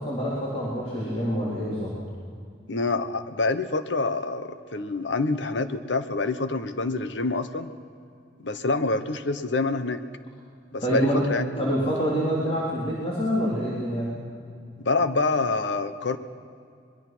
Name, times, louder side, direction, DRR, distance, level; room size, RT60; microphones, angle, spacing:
voice 1, 0.0-1.9 10.8-11.2 11.6-14.1, equal, 35° left, -7 dB, 3.7 m, -26 dB
voice 2, 2.7-7.7 8.4-10.0 10.7-11.8 14.8-16.2, left 3 dB, 70° left, 10 dB, 1.1 m, -26 dB
23.5 x 21.5 x 6.1 m, 2.4 s
head